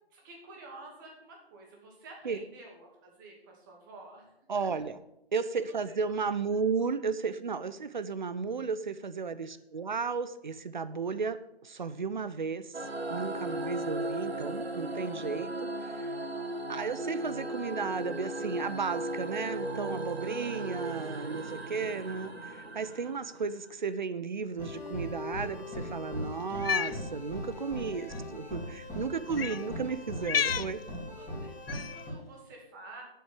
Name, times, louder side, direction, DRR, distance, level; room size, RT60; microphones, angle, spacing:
voice 1, 0.1-4.2 4.5-4.8 5.7-5.8 6.2-6.4 13.5-13.9 16.4-16.8 27.8-28.2 29.1-29.2 29.5-29.6 31.2-33.0, right 2 dB, 20° right, 0 dB, 2.4 m, -51 dB
voice 2, 4.5-5.0 5.3-11.4 11.6-16.1 16.7-30.8, right 5 dB, 50° right, 13 dB, 0.8 m, -34 dB
sound 1, 12.7-23.7, right 1 dB, 85° right, 1.4 m, -36 dB
sound 2, 24.6-32.1, left 1 dB, 5° left, 2.6 m, -39 dB
Cat, 26.5-27.0 28.0-28.2 29.3-29.6 30.2-30.7 31.7-32.0, left 7 dB, 70° left, 0.4 m, -31 dB
8.0 x 7.9 x 8.5 m, 0.87 s
figure-of-eight pair, 150°, 31 cm